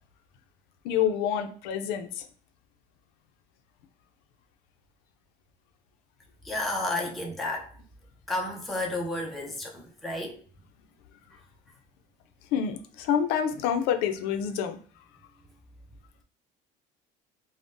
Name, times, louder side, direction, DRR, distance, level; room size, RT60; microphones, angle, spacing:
voice 1, 0.8-2.2 12.5-14.8, left 8 dB, 70° left, 0.4 m, -27 dB
voice 2, 6.4-7.8 8.3-10.4 11.3-11.4, left 2 dB, ahead, 0.3 m, -32 dB
3.6 x 2.0 x 2.5 m
cardioid pair, 175°, 17 cm